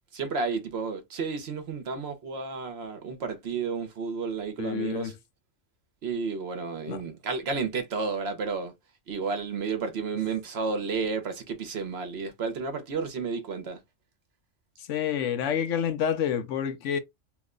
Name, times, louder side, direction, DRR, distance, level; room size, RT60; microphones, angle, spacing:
voice 1, 0.1-5.1 6.0-8.7 9.1-13.8, right 4 dB, 60° right, 0.9 m, -32 dB
voice 2, 4.6-5.1 6.9-7.0 14.9-17.0, left 8 dB, 75° left, 0.9 m, -28 dB
2.9 x 2.1 x 3.6 m
omnidirectional pair, 1.3 m